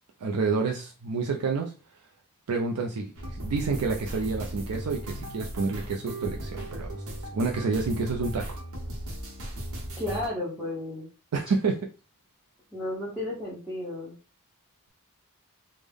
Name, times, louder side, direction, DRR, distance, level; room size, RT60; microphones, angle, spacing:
voice 1, 0.2-1.7 2.5-7.0 7.3-8.6 11.3-11.9, right 4 dB, 85° right, 1 dB, 0.4 m, -29 dB
sound 1, 3.2-10.3, right 1 dB, 70° right, 0.8 m, -37 dB
voice 2, 10.0-11.1 12.7-14.1, left 1 dB, ahead, -8 dB, 0.9 m, -33 dB
3.4 x 2.0 x 3.4 m, 0.33 s
head